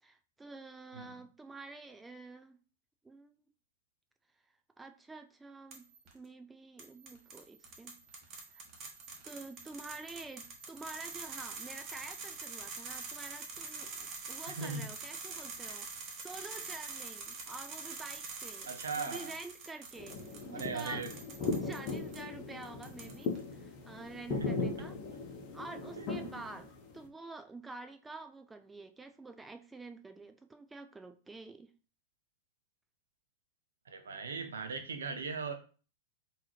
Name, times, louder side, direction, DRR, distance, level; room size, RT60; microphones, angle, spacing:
voice 1, 0.0-2.6 3.0-3.5 4.8-5.9 6.1-7.9 8.5-8.6 9.2-20.2 20.4-21.0 21.6-25.0 25.5-31.7, right 3 dB, 10° right, 8 dB, 0.4 m, -48 dB
sound 1, 5.7-6.1 6.8-22.2 22.6-23.4, right 4 dB, 35° right, 1.2 m, -45 dB
voice 2, 14.5-14.8 15.7-15.8 18.7-19.3 20.5-21.1 24.4-24.5 26.0-26.1 33.9-35.5, right 4 dB, 80° right, 6 dB, 0.7 m, -38 dB
sound 2, 20.0-27.0, left 3 dB, 40° left, 0.9 m, -38 dB
3.8 x 2.8 x 3.0 m, 0.37 s
hypercardioid pair, 105°, 0 cm